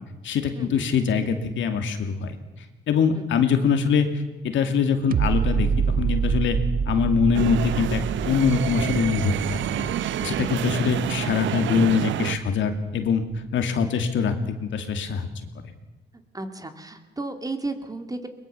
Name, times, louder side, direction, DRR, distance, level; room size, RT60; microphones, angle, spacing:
voice 1, 0.2-4.1 4.4-5.7 6.0-6.6 6.9-9.9 10.2-13.2 13.5-15.3 15.6-15.7, left 6 dB, 70° left, 7 dB, 2.4 m, -23 dB
sound 1, 5.1-12.2 12.6-12.7, right 7 dB, 45° right, 0.7 m, -27 dB
sound 2, 7.3-12.4, right 12 dB, 75° right, 0.8 m, -28 dB
voice 2, 16.3-18.3, right 2 dB, 20° right, 7 dB, 2.4 m, -34 dB
22.0 x 21.0 x 6.9 m, 1.1 s
cardioid pair, 90°, 20 cm